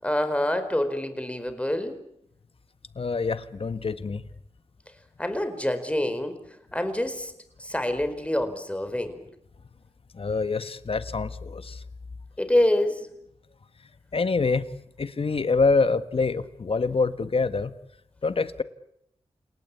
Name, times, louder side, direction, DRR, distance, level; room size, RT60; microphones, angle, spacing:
voice 1, 0.0-2.0 5.2-6.4 6.7-7.3 7.6-9.2 12.4-13.0, left 1 dB, 10° left, 9 dB, 4.8 m, -26 dB
voice 2, 2.9-4.2 10.1-11.8 14.1-14.6 15.0-17.7 18.2-18.6, left 4 dB, 55° left, 12 dB, 1.6 m, -25 dB
29.0 x 18.0 x 8.5 m, 0.76 s
cardioid pair, 50°, 12 cm